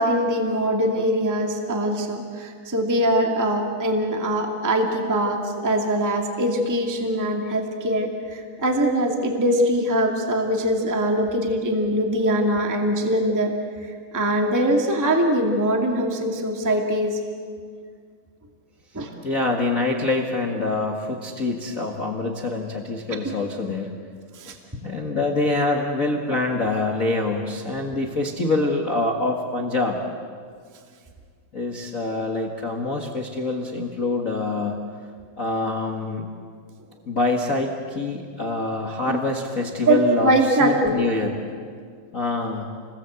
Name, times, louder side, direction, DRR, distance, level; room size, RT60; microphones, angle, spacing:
voice 1, 0.0-13.5 13.8-17.2 18.9-19.1 23.2-23.3 24.3-24.5 39.1-39.2 39.8-41.0, right 1 dB, 5° right, 2 dB, 1.4 m, -22 dB
voice 2, 19.2-23.9 24.5-24.6 24.8-30.0 31.5-34.7 35.4-36.3 37.1-41.4 42.1-42.7, left 2 dB, 65° left, 1 dB, 0.8 m, -25 dB
29.5 x 20.5 x 8.1 m, 2.1 s
omnidirectional pair, 4.3 m